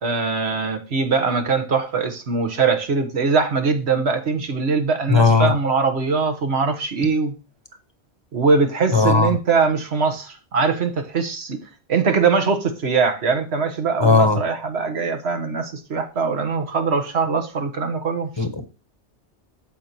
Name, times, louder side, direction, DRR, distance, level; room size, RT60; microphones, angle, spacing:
voice 1, 0.0-7.3 8.3-11.6 11.9-18.5, right 4 dB, 70° right, 1.5 m, -22 dB
voice 2, 5.1-5.5 8.9-9.3 14.0-14.4 18.4-18.6, left 4 dB, 25° left, 0.9 m, -16 dB
15.0 x 5.2 x 3.0 m
omnidirectional pair, 1.2 m